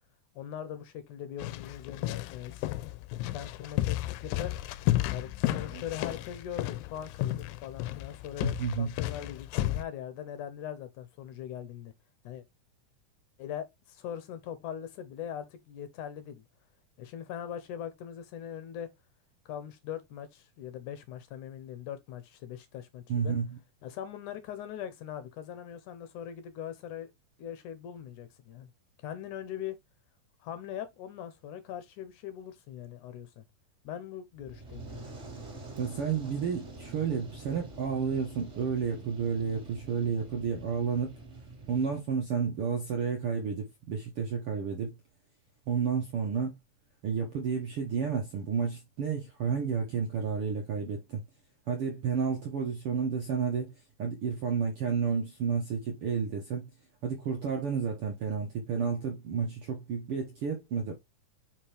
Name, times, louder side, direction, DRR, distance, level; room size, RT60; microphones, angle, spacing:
voice 1, 0.4-2.7 3.3-4.5 5.1-11.9 12.2-12.4 13.4-16.4 17.0-18.9 19.5-23.3 23.8-27.1 27.4-28.7 29.0-29.8 30.4-33.4 33.8-35.1, left 10 dB, 75° left, 2.1 m, -41 dB
sound 1, 1.4-9.8, left 15 dB, 90° left, 2.3 m, -33 dB
voice 2, 8.4-8.9 23.1-23.5 35.8-41.1 41.7-44.9 45.7-46.5 47.0-51.2 51.7-53.7 54.0-56.7 57.0-60.9, right 6 dB, 65° right, 1.4 m, -31 dB
Fire, 34.4-42.0, right 3 dB, 25° right, 1.7 m, -46 dB
5.9 x 5.1 x 3.3 m
omnidirectional pair, 4.0 m